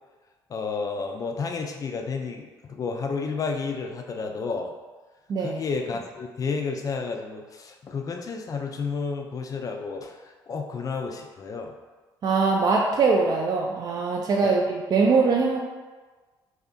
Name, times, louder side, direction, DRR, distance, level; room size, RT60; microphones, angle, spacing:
voice 1, 0.5-4.7 5.4-11.8 14.4-14.5, left 4 dB, 35° left, 3 dB, 0.4 m, -31 dB
voice 2, 5.3-5.6 12.2-15.7, right 4 dB, 35° right, -1 dB, 0.3 m, -22 dB
2.7 x 2.5 x 2.3 m, 1.3 s
hypercardioid pair, 55°, 11 cm